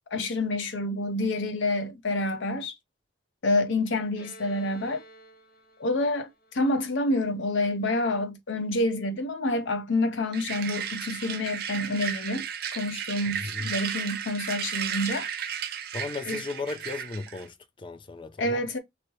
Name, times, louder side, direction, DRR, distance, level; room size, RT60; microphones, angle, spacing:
voice 1, 0.1-2.7 3.4-5.0 5.8-12.5 12.7-15.3 16.3-16.4 18.4-18.8, left 2 dB, 70° left, 0.7 m, -28 dB
Bowed string instrument, 4.2-7.7, equal, 45° left, 1.2 m, -52 dB
sound 1, 10.3-17.5, right 8 dB, 50° right, 0.5 m, -34 dB
voice 2, 13.3-13.7 15.9-18.7, left 3 dB, 25° left, 0.4 m, -36 dB
3.0 x 2.8 x 2.9 m
head